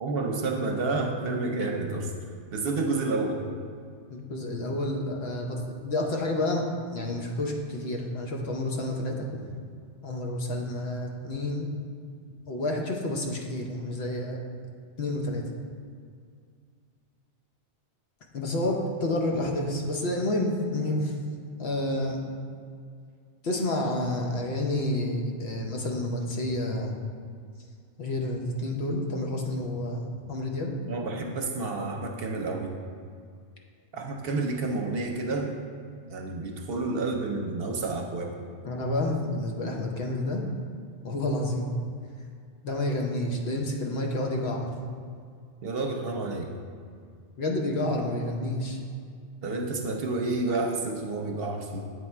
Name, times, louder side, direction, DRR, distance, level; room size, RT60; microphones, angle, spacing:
voice 1, 0.0-2.1 2.5-3.4 30.9-32.7 33.9-35.6 36.1-38.3 45.6-46.5 49.4-51.9, right 3 dB, 60° right, 1 dB, 0.8 m, -30 dB
voice 2, 4.1-6.6 6.9-9.4 10.0-11.7 12.5-14.4 15.0-15.4 18.3-21.1 21.6-22.2 23.4-27.0 28.0-30.7 38.6-40.4 41.0-41.7 42.6-44.8 47.4-48.8, left 1 dB, 65° left, 0 dB, 1.0 m, -29 dB
7.9 x 3.5 x 4.3 m, 2.2 s
omnidirectional pair, 1.2 m